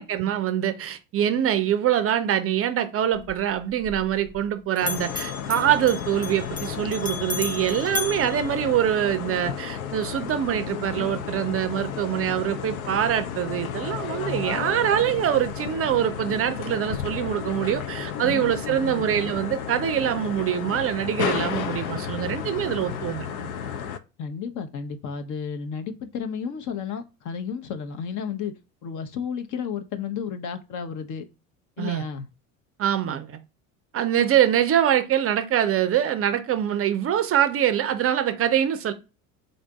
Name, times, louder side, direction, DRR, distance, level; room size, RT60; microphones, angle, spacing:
voice 1, 0.0-23.5 31.8-32.0 32.8-33.4 33.9-38.9, right 10 dB, 35° right, 0.5 m, -24 dB
Bell, 3.1-4.5 4.8-9.2, left 4 dB, 20° left, 0.5 m, -35 dB
sound 1, 4.8-24.0, left 8 dB, 85° left, 0.6 m, -32 dB
voice 2, 18.2-19.1 24.2-28.5 28.8-31.2 31.8-32.3, left 6 dB, 45° left, 0.8 m, -32 dB
3.9 x 2.5 x 3.4 m
hypercardioid pair, 70°, 41 cm